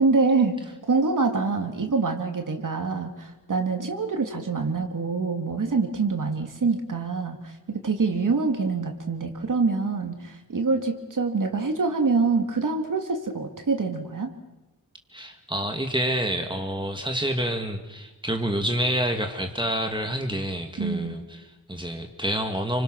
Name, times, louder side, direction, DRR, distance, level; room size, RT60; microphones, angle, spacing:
voice 1, 0.0-14.3 20.8-21.2, right 4 dB, 55° right, 4 dB, 2.8 m, -25 dB
voice 2, 15.1-22.8, equal, 10° right, 4 dB, 2.0 m, -28 dB
29.5 x 26.0 x 6.3 m, 0.98 s
wide cardioid pair, 155°, 38 cm